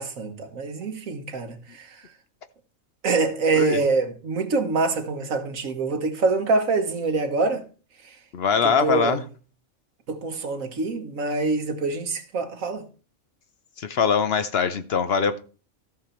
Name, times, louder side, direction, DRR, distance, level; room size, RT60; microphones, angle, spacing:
voice 1, 0.0-2.0 3.0-7.6 8.0-8.1 8.6-9.2 10.1-12.8, right 3 dB, 75° right, 1.6 m, -25 dB
voice 2, 8.3-9.2 13.8-15.4, left 6 dB, 55° left, 0.8 m, -22 dB
13.5 x 6.7 x 4.3 m
omnidirectional pair, 1.4 m